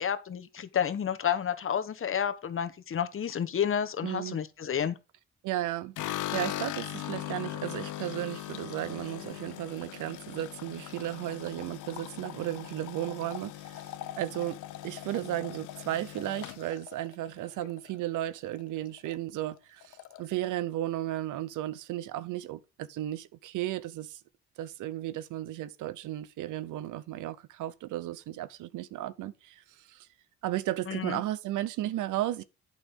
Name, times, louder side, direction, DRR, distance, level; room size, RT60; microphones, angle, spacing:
voice 1, 0.0-4.9 30.9-31.2, left 8 dB, 45° left, 1.1 m, -30 dB
voice 2, 4.0-4.4 5.4-13.9 14.2-14.6 14.8-24.2 24.6-30.1 30.4-32.4, right 14 dB, 85° right, 0.8 m, -34 dB
sound 1, 6.0-18.2 18.5-19.2 19.4-19.5 19.8-20.5, left 14 dB, 85° left, 0.9 m, -40 dB
8.4 x 5.9 x 5.3 m
cardioid pair, 90°, 30 cm